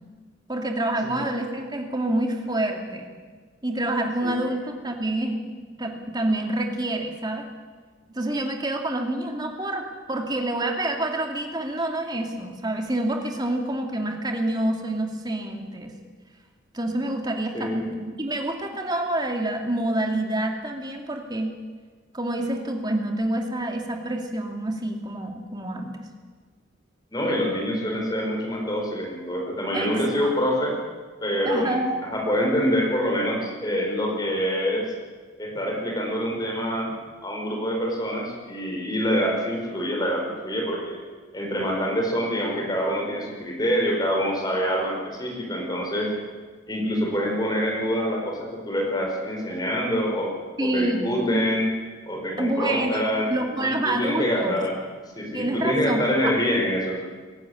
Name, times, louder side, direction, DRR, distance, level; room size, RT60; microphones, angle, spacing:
voice 1, 0.5-3.1 3.6-5.4 5.8-7.5 8.1-15.9 16.7-21.6 22.1-25.9 29.7-30.3 31.5-31.9 39.1-39.2 50.6-51.4 52.4-54.6 55.3-56.3, right 1 dB, 20° right, 3 dB, 2.4 m, -27 dB
voice 2, 4.2-4.5 17.5-17.8 27.1-30.8 31.2-31.8 32.1-34.9 35.4-36.9 37.2-41.0 41.3-46.1 46.7-50.3 50.6-51.7 52.1-53.3 53.6-54.7 55.1-57.0, equal, 20° left, 0 dB, 5.0 m, -26 dB
22.5 x 13.0 x 9.8 m, 1.5 s
head